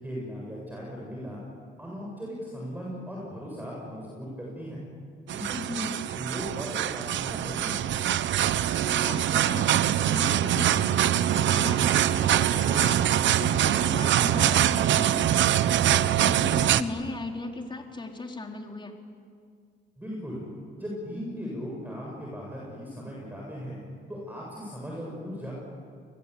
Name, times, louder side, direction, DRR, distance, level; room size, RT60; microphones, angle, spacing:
voice 1, 0.0-1.4 1.8-4.8 5.3-5.8 6.1-7.9 20.0-20.4 20.8-23.8 24.1-25.5, equal, 10° right, -3 dB, 7.9 m, -37 dB
sound 1, 5.3-16.8, right 11 dB, 70° right, 0.9 m, -24 dB
voice 2, 5.5-6.0 8.8-11.0 11.3-18.9, left 2 dB, 25° left, 2 dB, 3.9 m, -37 dB
28.5 x 21.5 x 8.6 m, 2.1 s
cardioid pair, 90°, 20 cm